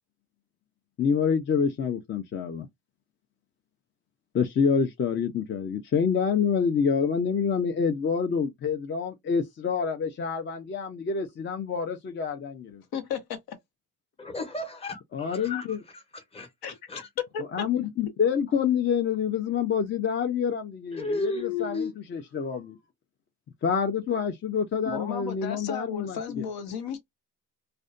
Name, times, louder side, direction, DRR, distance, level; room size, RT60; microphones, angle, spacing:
voice 1, 1.0-2.7 4.3-12.8 15.1-15.8 17.5-22.8 23.6-26.4, left 6 dB, 35° left, 0.4 m, -27 dB
voice 2, 12.9-13.4 16.6-16.7 17.3-17.4 24.8-27.0, left 7 dB, 80° left, 0.9 m, -34 dB
voice 3, 14.2-15.7 15.9-16.5 16.9-17.1 20.9-21.9, left 3 dB, 15° left, 0.8 m, -33 dB
2.5 x 2.2 x 2.4 m
cardioid pair, 135°, 36 cm